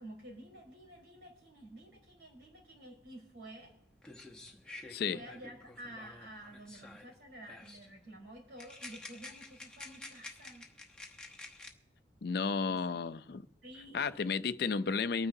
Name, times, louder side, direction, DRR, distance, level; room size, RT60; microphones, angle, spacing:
voice 1, 0.0-3.7 5.1-10.7 12.7-13.0 13.6-14.8, right 1 dB, 75° right, 4.2 m, -51 dB
sound 1, 3.7-3.8 4.0-7.2 7.5-7.9 8.6-11.7, left 2 dB, 5° left, 0.9 m, -50 dB
voice 2, 4.9-5.2 12.2-13.5 13.9-15.3, left 5 dB, 60° left, 0.4 m, -33 dB
23.5 x 9.5 x 2.7 m
head